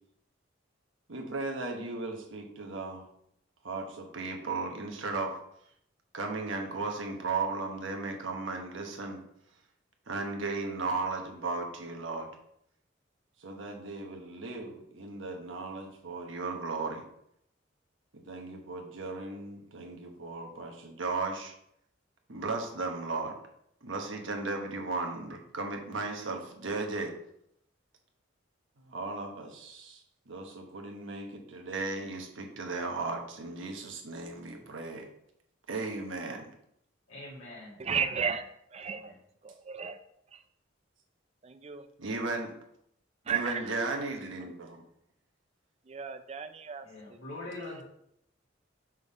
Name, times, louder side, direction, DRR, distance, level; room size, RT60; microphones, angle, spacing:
voice 1, 1.1-3.0 3.6-5.4 6.1-9.2 10.1-12.3 13.4-17.0 18.1-21.5 22.3-23.4 23.8-27.1 28.9-30.0 30.3-35.1 35.7-36.5 42.0-42.5 43.3-44.8, right 3 dB, 75° right, 3 dB, 1.1 m, -36 dB
voice 2, 37.1-38.3 38.9-39.2 46.8-47.8, left 2 dB, 80° left, -6 dB, 2.0 m, -44 dB
voice 3, 37.8-38.4 38.7-39.0 39.7-40.0 41.4-41.8 43.3-43.6 45.9-46.8, right 6 dB, 35° right, 9 dB, 0.4 m, -33 dB
6.1 x 3.6 x 4.8 m, 0.74 s
head